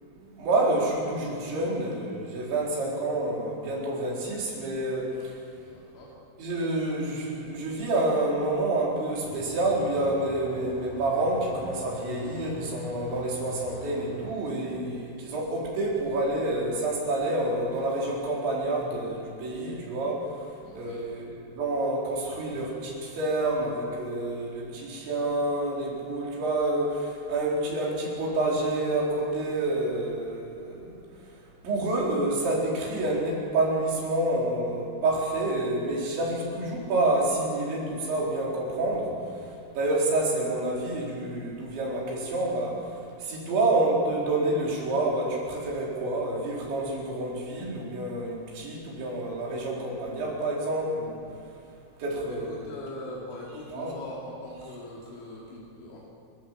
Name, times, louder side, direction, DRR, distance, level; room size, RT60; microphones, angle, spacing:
voice 1, 0.2-5.3 6.4-20.2 20.7-31.0 31.6-39.1 39.7-42.9 43.2-51.2 52.0-52.6 53.7-53.9, right 2 dB, 80° right, -3 dB, 6.6 m, -28 dB
voice 2, 5.5-6.1 20.6-21.1 52.1-56.0, left 1 dB, 85° left, -5 dB, 5.1 m, -42 dB
sound 1, 9.2-14.3, right 1 dB, 25° left, 2.4 m, -43 dB
29.5 x 15.0 x 7.7 m, 2.6 s
omnidirectional pair, 5.2 m